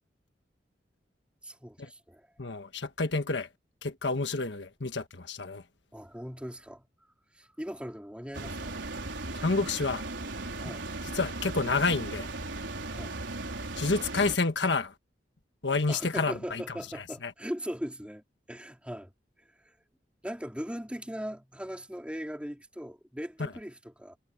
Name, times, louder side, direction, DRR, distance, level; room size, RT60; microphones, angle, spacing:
voice 1, 1.4-2.3 5.9-6.8 7.3-8.9 10.6-10.9 12.9-13.2 15.9-19.1 19.6-19.7 20.2-24.2, equal, 5° right, 4.3 m, -39 dB
voice 2, 2.4-3.5 3.8-5.6 9.4-10.0 11.1-12.3 13.8-14.9 15.6-16.6, left 3 dB, 70° left, 1.5 m, -29 dB
sound 1, 8.3-14.4, right 2 dB, 90° right, 4.2 m, -37 dB
head